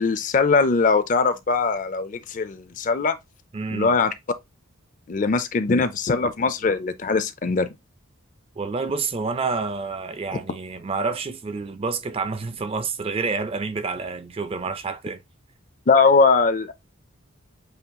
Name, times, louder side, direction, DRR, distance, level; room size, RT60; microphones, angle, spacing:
voice 1, 0.0-3.2 3.7-4.1 5.1-7.7 15.9-16.7, left 4 dB, 40° left, 0.4 m, -21 dB
voice 2, 3.5-4.0 8.6-15.2, right 4 dB, 25° right, 0.4 m, -28 dB
7.8 x 2.8 x 2.2 m
head